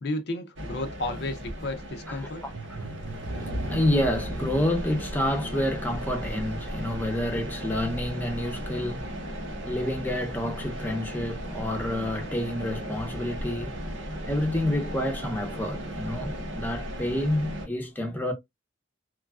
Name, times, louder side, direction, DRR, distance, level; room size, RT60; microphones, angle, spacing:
voice 1, 0.0-2.4, left 2 dB, 60° left, 0.4 m, -32 dB
sound 1, 0.6-17.7, equal, 85° right, 0.8 m, -36 dB
voice 2, 2.8-13.9 14.3-18.3, left 1 dB, 10° left, 0.7 m, -29 dB
3.0 x 2.3 x 2.3 m
head